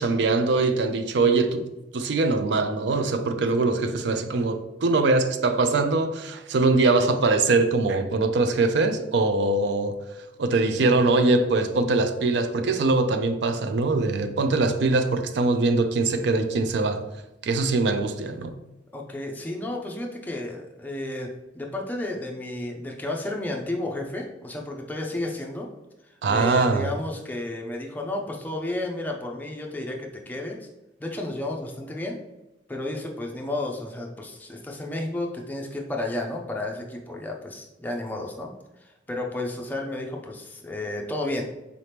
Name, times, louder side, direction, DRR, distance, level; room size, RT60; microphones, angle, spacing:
voice 1, 0.0-1.7 1.9-10.0 10.4-17.1 17.4-18.5 26.2-26.9, right 3 dB, 65° right, 0.4 m, -22 dB
voice 2, 18.9-21.3 21.5-25.7 26.0-30.7 31.0-32.2 32.7-38.5 38.8-41.4, left 1 dB, 10° left, 0.4 m, -32 dB
4.0 x 2.9 x 3.3 m
head